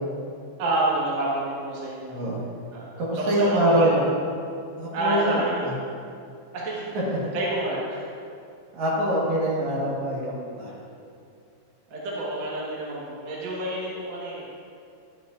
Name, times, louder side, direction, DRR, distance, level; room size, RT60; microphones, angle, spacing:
voice 1, 0.6-2.2 2.7-2.8 3.2-3.9 4.9-5.6 6.5-6.9 7.3-8.1 11.9-14.4, right 1 dB, 80° right, -6 dB, 1.5 m, -28 dB
voice 2, 2.1-2.4 3.0-4.0 4.8-5.7 7.1-7.2 8.7-10.7, right 1 dB, 65° right, -6 dB, 1.9 m, -24 dB
10.5 x 9.7 x 2.5 m, 2.5 s
omnidirectional pair, 5.4 m